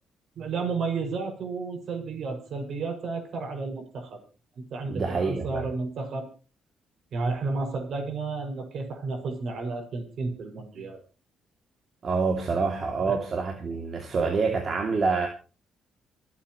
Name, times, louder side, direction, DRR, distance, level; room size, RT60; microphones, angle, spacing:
voice 1, 0.4-4.2 4.7-6.3 7.1-11.0 13.0-13.1, right 4 dB, 65° right, 4 dB, 6.4 m, -32 dB
voice 2, 4.9-5.6 12.0-15.3, right 4 dB, 45° right, 3 dB, 2.7 m, -27 dB
26.5 x 8.9 x 3.1 m, 0.34 s
cardioid pair, 90°, 0 cm